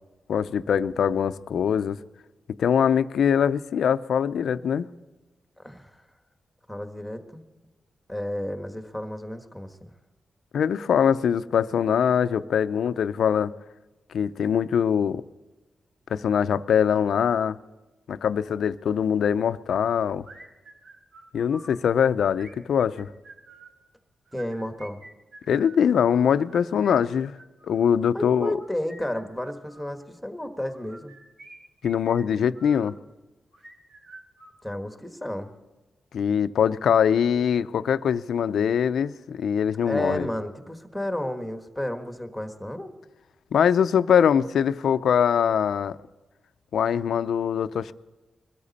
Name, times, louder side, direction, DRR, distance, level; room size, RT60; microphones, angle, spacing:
voice 1, 0.3-2.0 2.6-4.9 10.5-13.5 14.1-15.2 16.1-17.6 18.1-20.3 21.3-23.1 25.5-27.3 27.7-28.5 31.8-32.9 36.1-40.3 43.5-46.0 46.7-47.9, left 8 dB, 80° left, 0.5 m, -22 dB
voice 2, 5.6-6.0 6.7-7.4 8.1-9.9 24.3-25.0 28.1-31.1 34.6-35.5 39.9-42.9, left 1 dB, ahead, 1.4 m, -32 dB
sound 1, 20.2-21.8 22.3-23.8 24.3-25.8 26.3-27.9 28.5-29.9 30.6-32.9 33.5-35.0, right 2 dB, 65° right, 3.6 m, -49 dB
22.0 x 13.5 x 4.2 m
wide cardioid pair, 125°, 0 cm